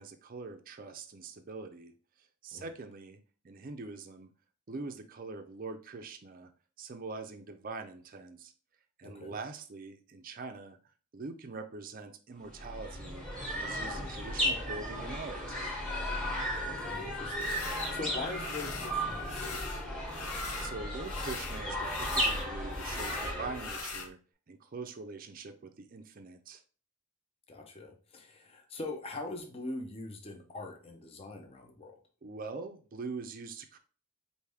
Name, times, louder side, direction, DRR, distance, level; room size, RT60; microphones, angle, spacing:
voice 1, 0.0-1.9 2.4-3.2 3.4-4.3 4.7-6.5 6.8-8.5 9.0-10.8 11.1-13.3 13.5-15.6 20.6-24.2 24.5-26.6 32.2-33.8, right 3 dB, 40° right, 6 dB, 0.5 m, -43 dB
voice 2, 9.0-9.4 16.6-20.4 27.5-31.9, left 2 dB, 25° left, 2 dB, 0.6 m, -43 dB
sound 1, 12.5-24.0, equal, ahead, 1.3 m, -35 dB
sound 2, 17.4-18.0 18.3-19.0 19.2-20.7 21.0-24.1, left 5 dB, 85° left, 0.7 m, -42 dB
4.9 x 2.6 x 3.4 m, 0.37 s
head